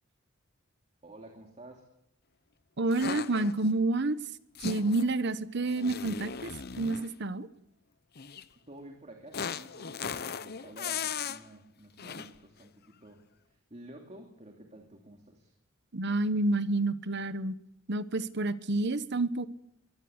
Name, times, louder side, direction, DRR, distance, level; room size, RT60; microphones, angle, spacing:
voice 1, 1.0-1.8 8.7-13.2 13.5-15.5, right 1 dB, 35° right, 3 dB, 2.8 m, -51 dB
voice 2, 2.8-4.2 4.6-6.5 6.8-7.5 15.9-17.5 17.9-19.5, right 2 dB, 60° right, 14 dB, 1.1 m, -29 dB
sound 1, 2.9-3.7 4.5-5.1 5.7-7.1 8.2-8.4 9.3-11.4 12.0-12.4, left 6 dB, 50° left, 0.9 m, -37 dB
23.0 x 17.5 x 8.1 m, 0.78 s
head